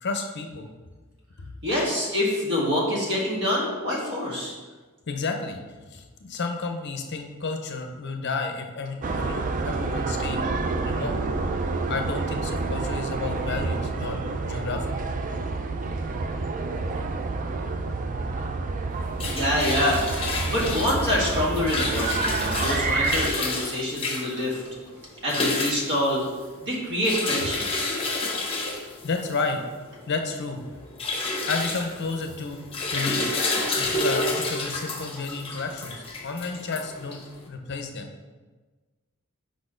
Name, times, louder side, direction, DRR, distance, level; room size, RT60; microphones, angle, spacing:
voice 1, 0.0-0.7 1.4-1.5 5.1-5.6 5.9-10.4 10.8-11.2 11.9-14.2 14.4-15.0 29.0-29.6 30.1-30.6 31.5-32.6 32.9-33.4 33.8-38.1, left 4 dB, 50° left, 5 dB, 0.6 m, -31 dB
voice 2, 1.6-4.5 19.3-20.0 20.4-24.6 25.2-26.2 26.6-28.0, left 1 dB, 50° right, -4 dB, 1.7 m, -26 dB
sound 1, 9.0-23.3, right 3 dB, 35° right, 0.3 m, -28 dB
sound 2, 18.9-37.4, left 2 dB, 25° left, 0.8 m, -30 dB
5.0 x 4.2 x 5.0 m, 1.3 s
head